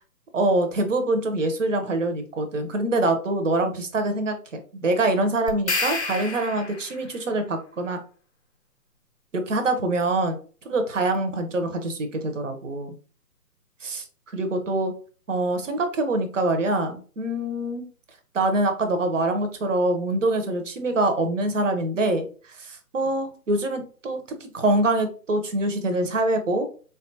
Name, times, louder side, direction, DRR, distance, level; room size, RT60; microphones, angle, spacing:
voice 1, 0.3-8.0 9.3-10.4 10.6-12.9 13.8-14.0 14.3-14.9 15.3-17.9 18.3-26.7, right 2 dB, 50° right, 7 dB, 0.7 m, -25 dB
sound 1, 5.5-7.1, left 3 dB, 45° left, 0.5 m, -29 dB
3.6 x 2.3 x 2.6 m, 0.39 s
figure-of-eight pair, 145°, 48 cm